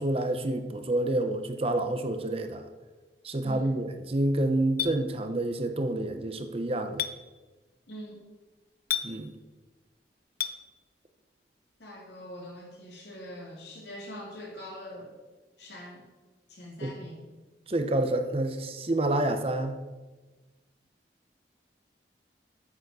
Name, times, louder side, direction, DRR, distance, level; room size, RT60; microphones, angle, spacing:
voice 1, 0.0-2.6 3.2-7.0 9.0-9.3 16.8-16.9 17.7-19.8, right 1 dB, 35° right, 7 dB, 0.7 m, -28 dB
voice 2, 3.4-3.7 7.9-8.3 11.8-15.2 15.6-16.1 16.5-17.2, equal, 75° left, -2 dB, 3.1 m, -43 dB
Chink clink, 4.8-4.9 7.0-7.1 8.9-9.1 10.4-10.6, left 10 dB, 55° left, 0.7 m, -29 dB
8.9 x 7.0 x 6.7 m, 1.3 s
head